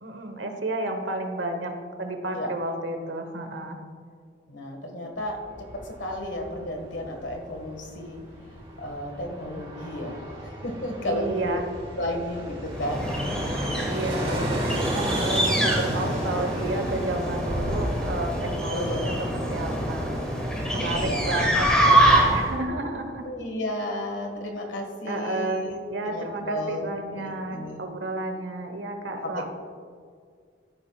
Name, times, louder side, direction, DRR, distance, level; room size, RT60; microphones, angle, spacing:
voice 1, 0.0-1.7 2.0-3.8 11.0-11.6 13.8-23.3 25.1-25.6 25.9-29.5, right 2 dB, 85° right, 5 dB, 1.2 m, -31 dB
voice 2, 4.5-5.4 5.7-8.2 8.8-11.6 12.0-13.1 18.7-19.1 20.7-21.4 23.2-27.8 29.2-29.5, left 1 dB, 90° left, 2 dB, 1.6 m, -33 dB
Fixed-wing aircraft airplane, 5.2-22.2 22.5-22.6, right 1 dB, 30° right, 1.5 m, -36 dB
sound 1, 12.7-22.6, right 1 dB, 5° left, 1.5 m, -25 dB
13.0 x 10.5 x 2.4 m, 2.1 s
head